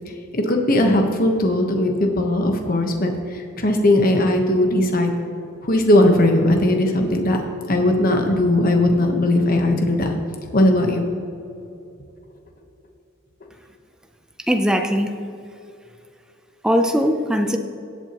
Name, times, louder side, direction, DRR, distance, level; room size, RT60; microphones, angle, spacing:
voice 1, 0.3-5.1 5.6-7.4 7.7-10.1 10.5-11.1, left 1 dB, 45° left, 3 dB, 1.1 m, -18 dB
voice 2, 14.5-15.1 16.6-17.6, equal, 5° right, 5 dB, 0.5 m, -19 dB
17.0 x 8.0 x 3.0 m, 2.7 s
head